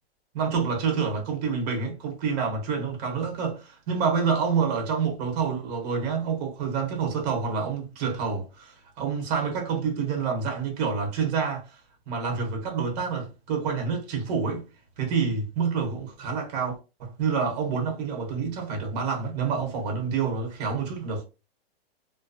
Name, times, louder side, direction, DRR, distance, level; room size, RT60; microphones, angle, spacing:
voice 1, 0.3-11.7 12.1-14.7 15.0-21.2, right 5 dB, 40° right, 1.1 m, -28 dB
2.5 x 2.2 x 2.6 m
supercardioid pair, 165°, 30 cm